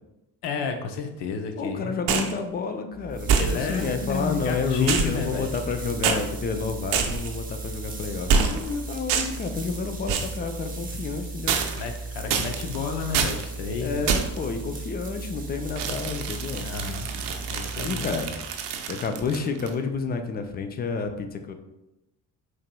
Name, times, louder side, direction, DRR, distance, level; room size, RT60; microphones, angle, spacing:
voice 1, 0.4-2.0 3.3-5.5 11.8-14.0 16.6-17.1 17.5-18.1, left 5 dB, 60° left, 6 dB, 0.7 m, -31 dB
voice 2, 1.6-11.6 12.2-12.4 13.8-16.7 17.8-18.4 18.9-21.5, left 5 dB, 20° left, 7 dB, 0.4 m, -30 dB
sound 1, 2.1-2.4 3.3-3.9 4.9-5.7 6.0-6.2 6.9-7.4 8.3-8.7 9.1-9.5 10.1-10.4 11.5-12.0 12.3-12.8 13.1-13.4 14.1-14.4 15.8-19.7, right 6 dB, 60° right, 0.7 m, -26 dB
sound 2, 2.9-18.7, right 3 dB, 15° right, 0.8 m, -36 dB
4.6 x 3.0 x 2.2 m, 0.93 s
hypercardioid pair, 50°, 49 cm